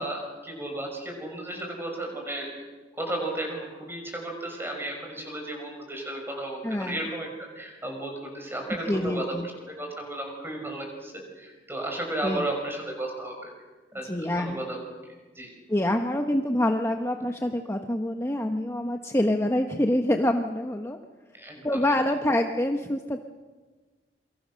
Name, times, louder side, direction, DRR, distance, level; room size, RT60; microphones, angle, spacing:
voice 1, 0.0-2.5 3.0-7.3 7.5-13.5 13.9-14.8 15.3-15.5 21.4-21.9, right 1 dB, 15° right, 2 dB, 6.2 m, -34 dB
voice 2, 6.6-7.0 8.9-9.4 12.2-12.4 14.0-14.6 15.7-21.0 21.6-23.2, left 1 dB, 15° left, 4 dB, 1.1 m, -26 dB
27.5 x 24.0 x 6.5 m, 1.3 s
head